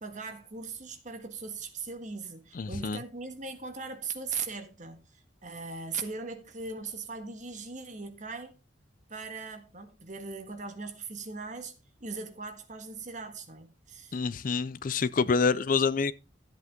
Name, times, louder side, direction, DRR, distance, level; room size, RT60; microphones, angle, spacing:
voice 1, 0.0-5.1 5.4-8.5 9.1-11.7 12.0-14.2, right 4 dB, 40° right, 1.6 m, -39 dB
voice 2, 2.6-3.0 14.1-16.1, left 5 dB, 45° left, 0.4 m, -27 dB
13.5 x 8.2 x 3.6 m
head